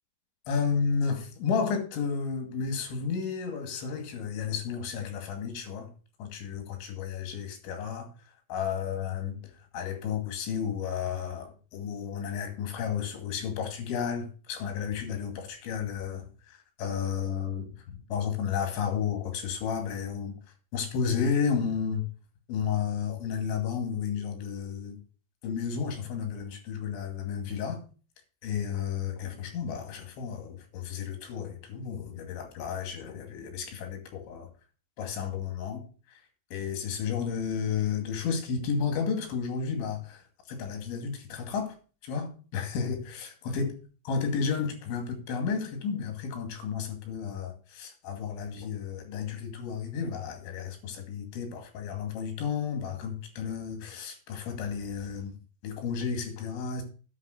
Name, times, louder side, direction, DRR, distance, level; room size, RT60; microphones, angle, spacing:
voice 1, 0.5-5.9 6.2-8.1 8.5-9.4 9.7-20.4 20.7-22.1 22.5-25.0 25.4-27.8 28.4-34.5 35.0-36.2 36.5-41.7 42.0-43.7 44.1-55.4 55.6-56.8, left 6 dB, 85° left, 4.8 m, -32 dB
9.7 x 6.6 x 7.8 m
omnidirectional pair, 5.2 m